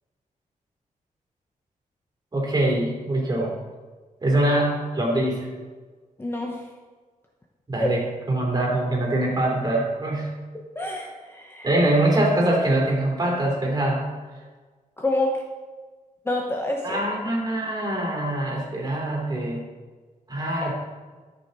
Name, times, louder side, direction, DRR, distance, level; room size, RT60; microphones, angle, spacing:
voice 1, 2.3-3.5 4.2-5.5 7.7-10.3 11.6-14.1 16.8-19.6 20.3-20.7, right 1 dB, 30° right, -2 dB, 3.2 m, -23 dB
voice 2, 6.2-6.6 7.8-7.9 10.8-11.7 15.0-15.4 16.3-17.0 20.6-20.7, left 1 dB, 15° left, 0 dB, 0.9 m, -27 dB
13.5 x 6.2 x 4.1 m, 1.4 s
cardioid pair, 110°, 14 cm